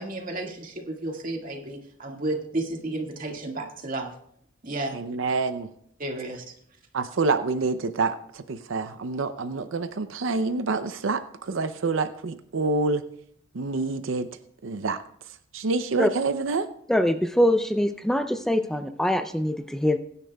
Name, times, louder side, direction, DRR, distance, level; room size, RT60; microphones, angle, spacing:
voice 1, 0.0-4.1 4.6-5.0 6.0-6.4, right 2 dB, 45° right, 1 dB, 1.9 m, -32 dB
voice 2, 4.9-5.7 6.9-13.0 13.5-14.3 14.6-15.0 15.5-16.7, right 3 dB, 80° right, 10 dB, 0.6 m, -27 dB
voice 3, 16.9-20.0, left 1 dB, ahead, 8 dB, 0.4 m, -23 dB
22.5 x 10.0 x 2.3 m, 0.68 s
head